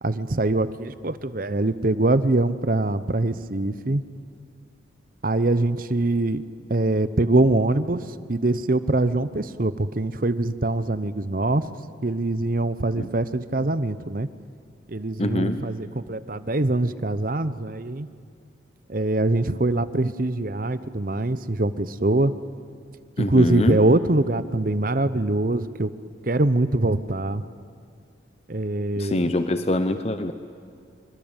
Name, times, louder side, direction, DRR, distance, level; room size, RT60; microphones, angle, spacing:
voice 1, 0.0-4.0 5.2-6.4 6.7-11.7 12.0-14.3 14.9-18.1 18.9-22.3 23.2-25.9 26.2-27.4 28.5-29.3, right 2 dB, 45° right, 14 dB, 0.9 m, -23 dB
voice 2, 15.2-15.6 23.2-23.8 29.0-30.3, left 1 dB, 35° left, 9 dB, 0.9 m, -24 dB
25.5 x 24.0 x 9.0 m, 2.4 s
head